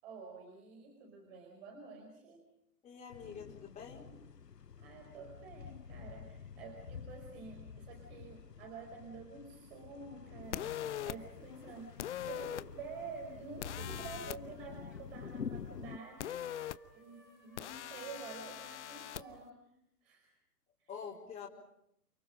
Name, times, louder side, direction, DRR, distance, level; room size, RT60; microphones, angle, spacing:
voice 1, 0.0-2.4 4.8-16.7 16.9-19.6 20.0-20.3 20.8-20.9, right 4 dB, 40° right, 2 dB, 5.2 m, -49 dB
voice 2, 2.8-4.1 20.9-21.5, left 6 dB, 15° left, -4 dB, 4.5 m, -46 dB
sound 1, 3.1-16.0, left 6 dB, 90° left, 0.9 m, -48 dB
sound 2, 10.5-11.2 12.0-12.6 13.6-14.4 16.2-16.8 17.6-19.2, left 11 dB, 45° left, 0.9 m, -41 dB
sound 3, 14.4-15.1 16.4-19.4, left 1 dB, ahead, 5.1 m, -64 dB
30.0 x 27.5 x 5.2 m, 0.74 s
figure-of-eight pair, 125°, 47 cm